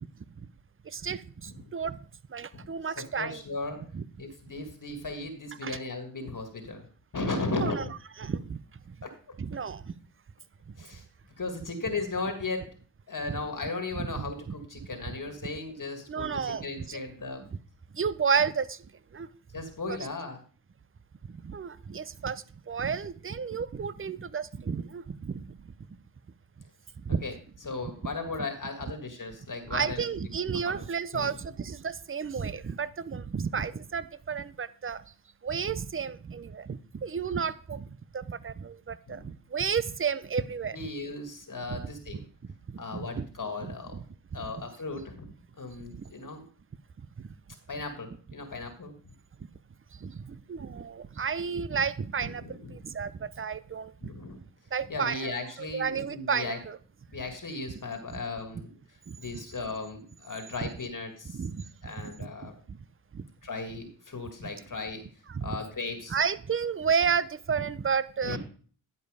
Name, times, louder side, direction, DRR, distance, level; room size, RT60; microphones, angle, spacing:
voice 1, 0.9-2.0 2.3-3.4 3.9-4.0 5.6-5.8 7.5-7.9 8.2-8.6 8.9-9.0 9.4-9.8 13.3-13.4 14.0-14.3 15.1-15.2 16.1-17.0 17.5-17.6 17.9-18.8 19.1-19.3 19.9-20.0 21.3-25.5 27.0-27.2 28.4-28.5 29.7-35.0 35.4-37.9 38.1-40.9 41.7-41.8 42.7-42.8 43.1-43.3 43.6-44.0 47.2-47.3 50.0-52.4 52.7-53.9 54.7-56.8 59.1-59.4 61.3-62.3 62.7-62.8 63.1-63.3 65.3-65.6 66.1-68.4, right 6 dB, 25° right, 16 dB, 0.7 m, -32 dB
voice 2, 3.0-3.8 4.2-6.9 7.1-7.9 9.0-9.1 10.8-11.0 11.4-12.7 13.1-17.4 19.5-20.4 27.2-27.3 27.6-30.1 30.5-30.8 31.1-31.3 33.6-33.7 39.1-39.3 40.7-42.3 42.8-44.0 44.3-45.3 45.6-46.4 47.7-48.9 52.2-52.8 54.0-54.4 54.9-56.6 57.1-61.4 61.8-62.5 63.4-65.0 65.4-66.2 68.2-68.4, left 3 dB, 40° left, 5 dB, 1.9 m, -36 dB
11.0 x 5.3 x 4.9 m, 0.42 s
supercardioid pair, 50°, 47 cm